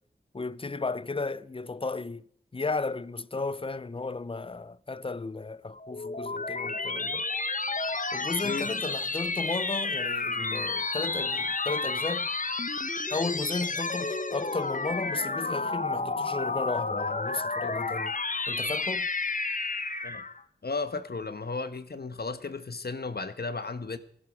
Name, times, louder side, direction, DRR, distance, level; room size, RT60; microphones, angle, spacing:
voice 1, 0.3-2.2 2.5-7.3 8.1-12.3 13.1-18.1 18.5-19.1, left 3 dB, 30° left, 0.6 m, -34 dB
sound 1, 5.7-20.4, left 3 dB, 50° left, 1.1 m, -31 dB
voice 2, 8.4-8.7 20.0-20.2 20.6-24.0, left 3 dB, 65° left, 1.2 m, -34 dB
15.5 x 11.5 x 6.1 m
cardioid pair, 45°, 18 cm